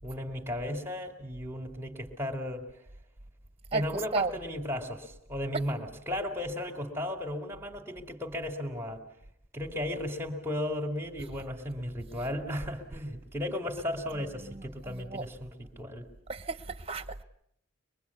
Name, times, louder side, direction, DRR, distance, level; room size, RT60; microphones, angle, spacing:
voice 1, 0.0-2.9 3.7-9.0 9.5-16.1, left 1 dB, 15° right, 2.3 m, -35 dB
voice 2, 14.5-15.2 16.3-17.2, right 4 dB, 30° right, 1.1 m, -33 dB
24.0 x 22.5 x 8.4 m
head